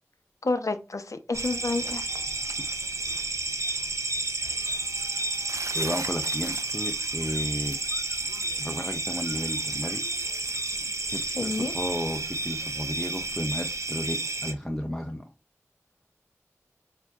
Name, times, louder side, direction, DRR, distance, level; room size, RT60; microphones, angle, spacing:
voice 1, 0.4-2.0 11.4-11.7, left 3 dB, 85° left, 9 dB, 0.6 m, -29 dB
sound 1, 1.3-14.5, right 2 dB, 70° right, 0.6 m, -31 dB
voice 2, 5.7-7.8 8.6-10.0 11.1-15.3, equal, 10° left, 4 dB, 0.6 m, -33 dB
7.0 x 2.7 x 2.3 m, 0.29 s
wide cardioid pair, 45°, 5 cm